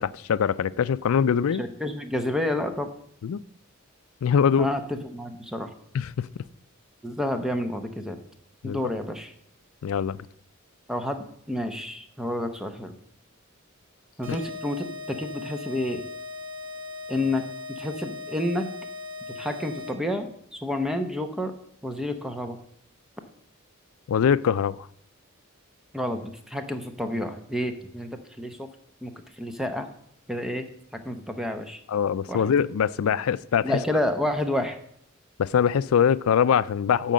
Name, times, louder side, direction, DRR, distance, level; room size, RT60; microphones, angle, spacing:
voice 1, 0.0-1.6 3.2-3.4 4.2-4.7 5.9-6.3 8.6-8.8 9.8-10.2 14.3-14.4 24.1-24.8 31.9-33.7 35.4-37.1, left 7 dB, 85° left, 18 dB, 0.4 m, -23 dB
voice 2, 1.6-2.9 4.6-5.7 7.0-8.2 8.6-9.3 10.9-12.9 14.2-16.0 17.1-18.7 19.3-20.3 20.6-21.5 21.8-22.6 25.9-28.7 29.0-29.9 30.3-31.8 32.3-32.5 33.6-34.8, left 1 dB, ahead, 6 dB, 0.8 m, -29 dB
sound 1, 14.2-20.2, left 3 dB, 65° right, 2.0 m, -38 dB
9.1 x 4.5 x 7.4 m, 0.67 s
head